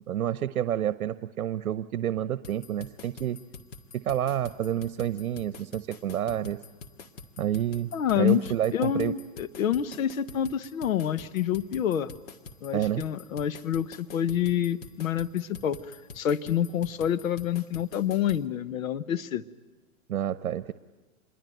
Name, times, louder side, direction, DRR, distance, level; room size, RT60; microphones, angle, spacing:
voice 1, 0.1-3.4 3.9-6.6 7.4-7.9 8.2-9.1 12.7-13.0 20.1-20.7, right 11 dB, 80° right, 13 dB, 0.9 m, -29 dB
sound 1, 2.4-18.4, left 4 dB, 35° left, 1.8 m, -46 dB
voice 2, 7.9-8.4 8.7-12.1 12.6-19.4, left 10 dB, 75° left, 13 dB, 1.1 m, -27 dB
27.0 x 22.0 x 9.3 m, 1.2 s
hypercardioid pair, 135°, 42 cm